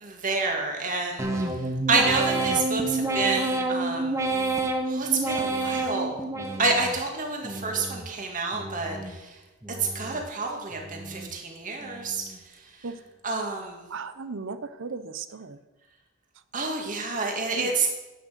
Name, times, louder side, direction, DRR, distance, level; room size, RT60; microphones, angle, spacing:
voice 1, 0.0-1.3 1.9-4.2 4.9-6.2 6.6-9.0 9.9-12.2 13.2-13.8 16.5-17.9, right 3 dB, 35° right, 1 dB, 2.1 m, -28 dB
sound 1, 1.2-7.0 7.4-8.1 8.5-9.2 9.6-10.3 10.7-11.3 11.8-12.3, right 2 dB, 15° right, 1.0 m, -29 dB
voice 2, 13.9-15.6 17.5-17.7, right 4 dB, 60° right, 13 dB, 0.7 m, -36 dB
10.0 x 6.3 x 7.8 m, 1.1 s
head